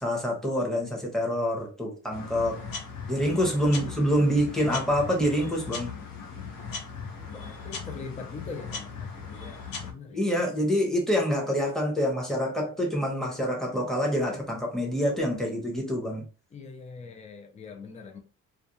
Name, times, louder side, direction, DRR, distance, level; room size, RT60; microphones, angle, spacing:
voice 1, 0.0-2.6 3.1-5.9 10.1-16.2, equal, ahead, 0.9 m, -26 dB
sound 1, 2.1-9.9, left 5 dB, 85° left, 0.7 m, -38 dB
voice 2, 3.7-4.3 7.1-10.4 16.5-18.2, left 4 dB, 20° left, 0.5 m, -43 dB
2.4 x 2.3 x 2.7 m
cardioid pair, 115°, 33 cm